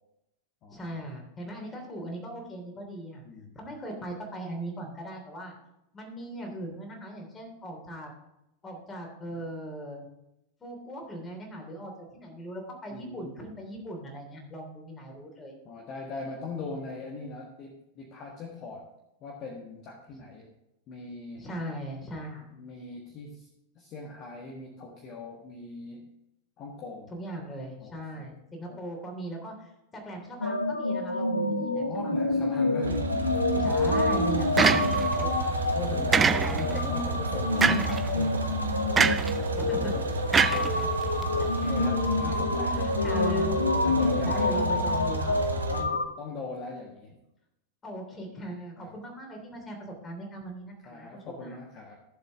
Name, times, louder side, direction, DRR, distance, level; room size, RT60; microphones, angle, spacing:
voice 1, 0.7-3.2 3.5-5.5 5.9-8.1 8.6-10.1 10.6-15.5 21.4-22.4 27.1-32.5 33.5-35.5 39.6-39.9 40.3-40.8 42.2-42.4 42.7-43.6 44.2-45.4 47.8-51.6, right 1 dB, 20° left, 2 dB, 3.2 m, -39 dB
voice 2, 12.9-13.3 15.6-18.9 19.2-20.5 20.9-21.5 22.5-23.5 23.7-26.1 26.6-27.1 27.8-28.3 28.7-28.8 31.9-33.1 35.1-35.5 35.7-38.6 39.9-40.2 40.6-41.0 41.3-43.4 43.8-45.0 45.7-47.2 48.8-49.0 50.8-51.9, left 3 dB, 35° left, 0 dB, 1.6 m, -40 dB
sound 1, 30.4-46.0, left 2 dB, 85° left, 1.3 m, -28 dB
sound 2, 32.8-45.8, right 3 dB, 75° right, 1.1 m, -32 dB
sound 3, 34.6-35.2 36.1-36.8 37.6-38.0 39.0-39.4 40.3-41.2, right 5 dB, 20° right, 0.5 m, -23 dB
14.5 x 7.3 x 3.6 m, 0.88 s
figure-of-eight pair, 90°, 0 cm